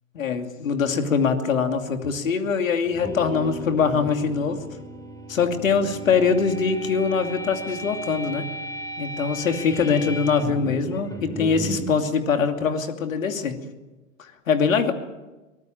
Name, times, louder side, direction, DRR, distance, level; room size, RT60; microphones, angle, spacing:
voice 1, 0.1-4.6 5.3-8.4 9.0-13.5 14.2-14.9, left 5 dB, 75° left, 6 dB, 2.7 m, -23 dB
sound 1, 2.9-12.0, equal, 10° left, 4.0 m, -35 dB
23.5 x 18.5 x 8.9 m, 1.1 s
figure-of-eight pair, 95°, 40 cm